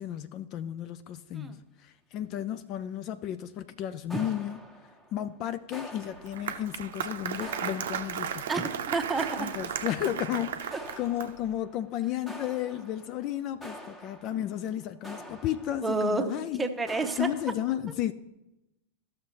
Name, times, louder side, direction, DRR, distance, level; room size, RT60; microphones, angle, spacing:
voice 1, 0.0-4.6 5.1-8.5 9.4-16.7 17.2-18.1, left 11 dB, 40° left, 0.3 m, -33 dB
sound 1, 4.1-5.3 5.7-7.0 7.4-8.6 9.2-10.3 10.7-11.9 12.3-16.2 16.9-17.5, equal, 10° left, 1.2 m, -47 dB
Applause, 6.0-11.5, right 8 dB, 60° right, 0.6 m, -35 dB
voice 2, 8.5-9.5 15.8-17.3, right 3 dB, 10° right, 0.8 m, -30 dB
14.0 x 6.4 x 2.9 m
figure-of-eight pair, 90°, 0 cm